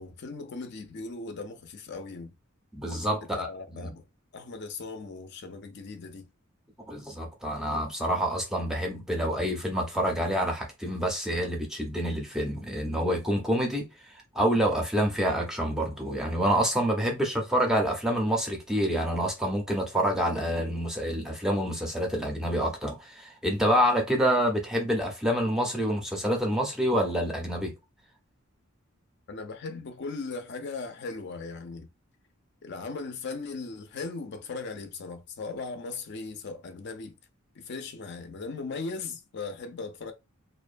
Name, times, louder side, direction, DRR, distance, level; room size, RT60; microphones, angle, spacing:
voice 1, 0.0-2.3 3.3-4.1 4.3-6.3 29.3-31.9 32.6-37.2 37.6-40.1, left 4 dB, 50° left, 0.5 m, -38 dB
voice 2, 2.7-3.9 6.9-27.7, equal, 5° right, 0.5 m, -27 dB
2.5 x 2.2 x 2.5 m
head